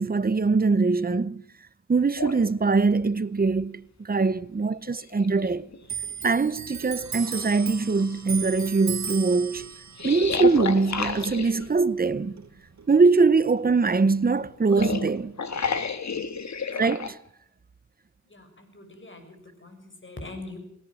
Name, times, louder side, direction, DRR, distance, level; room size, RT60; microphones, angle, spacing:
voice 1, 0.0-1.4 1.9-5.7 6.2-9.7 10.0-12.4 12.9-15.3 16.8-17.2, right 4 dB, 30° right, 0.8 m, -22 dB
sound 1, 2.2-2.4 4.2-4.3 4.7-5.8 6.3-6.4 7.1-8.2 10.0-11.7 14.5-17.1, left 5 dB, 65° left, 2.0 m, -31 dB
Clock, 5.8-12.9 13.2-14.5 14.8-15.6, right 6 dB, 70° right, 1.3 m, -37 dB
voice 2, 18.3-20.6, left 2 dB, 40° left, 7.2 m, -42 dB
20.5 x 18.0 x 7.7 m
wide cardioid pair, 85°, 29 cm